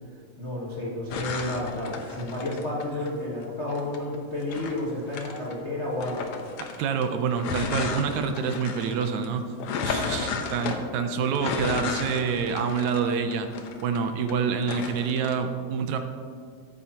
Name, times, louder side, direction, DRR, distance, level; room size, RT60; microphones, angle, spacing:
voice 1, 0.4-6.3, left 1 dB, 40° left, -6 dB, 0.9 m, -31 dB
sound 1, 1.1-3.1 3.7-5.6 6.0-14.3 14.6-15.4, left 5 dB, 70° left, 1.5 m, -33 dB
voice 2, 6.8-9.4 9.8-13.5 13.8-16.0, right 6 dB, 75° right, 7 dB, 1.9 m, -27 dB
13.5 x 9.3 x 2.9 m, 2.1 s
omnidirectional pair, 3.4 m